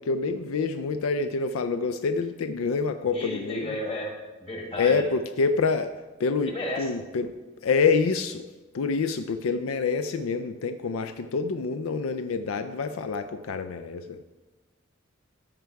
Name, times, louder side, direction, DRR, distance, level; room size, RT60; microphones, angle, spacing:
voice 1, 0.0-3.8 4.8-5.9 6.2-7.3 7.6-8.4 8.7-14.2, left 4 dB, 75° left, 9 dB, 0.4 m, -27 dB
voice 2, 3.1-4.1 4.4-5.0 6.5-6.9, left 1 dB, 30° left, 0 dB, 1.6 m, -32 dB
13.5 x 4.6 x 4.6 m, 1.2 s
head